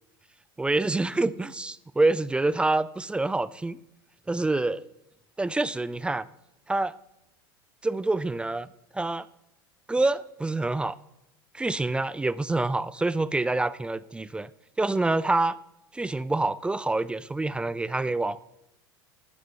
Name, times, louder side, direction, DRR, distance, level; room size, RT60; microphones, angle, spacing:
voice 1, 0.6-3.8 4.3-4.8 5.4-6.3 6.7-6.9 7.8-8.7 8.9-9.3 9.9-11.0 11.5-14.5 14.8-15.6 15.9-18.4, right 2 dB, 10° right, 0.3 m, -26 dB
12.5 x 8.6 x 3.3 m
hypercardioid pair, 90°, 12 cm